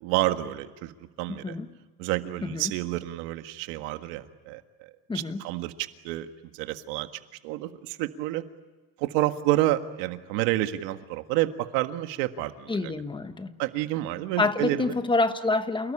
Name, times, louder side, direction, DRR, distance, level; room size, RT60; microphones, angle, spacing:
voice 1, 0.0-1.6 2.0-7.1 7.4-8.4 9.0-13.0 13.6-14.9, right 15 dB, 90° right, 1.7 m, -29 dB
voice 2, 1.3-1.7 2.4-2.7 5.1-5.4 12.7-13.6 14.4-15.9, left 3 dB, 15° left, 1.2 m, -27 dB
28.5 x 18.0 x 10.0 m
cardioid pair, 140°, 34 cm